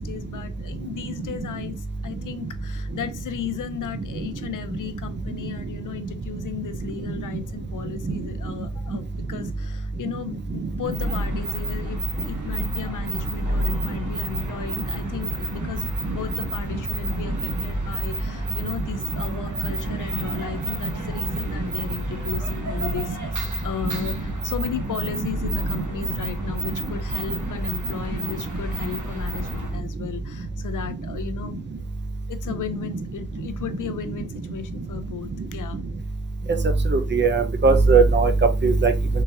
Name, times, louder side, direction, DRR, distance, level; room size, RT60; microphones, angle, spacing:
voice 1, 0.0-1.7 2.0-31.6 32.3-35.8, left 8 dB, 60° left, 0.5 m, -35 dB
sound 1, 10.9-29.8, right 1 dB, 60° right, 1.1 m, -30 dB
voice 2, 25.2-25.5 36.9-38.3 38.6-38.9, right 4 dB, 30° right, 0.5 m, -18 dB
3.7 x 2.8 x 2.6 m
wide cardioid pair, 140°, 35 cm